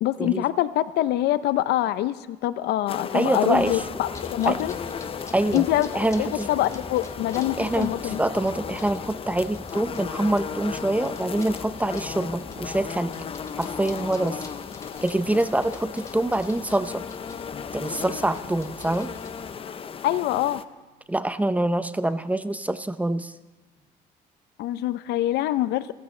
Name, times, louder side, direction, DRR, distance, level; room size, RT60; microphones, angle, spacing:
voice 1, 0.0-4.7 5.5-5.9 6.2-8.2 20.0-20.6 24.6-25.9, left 14 dB, 80° left, 14 dB, 0.6 m, -25 dB
sound 1, 2.9-20.6, left 7 dB, 35° left, 0.6 m, -36 dB
voice 2, 3.1-3.8 4.5-4.6 5.3-5.6 5.9-6.5 7.6-13.1 13.6-14.4 15.0-17.0 17.7-19.1 21.1-23.3, right 1 dB, 10° right, 12 dB, 0.6 m, -25 dB
sound 2, 3.5-19.6, left 2 dB, 20° left, 1.4 m, -44 dB
sound 3, 17.5-23.8, left 3 dB, 50° left, 2.5 m, -57 dB
27.0 x 15.0 x 3.3 m, 1.3 s
cardioid pair, 110°, 17 cm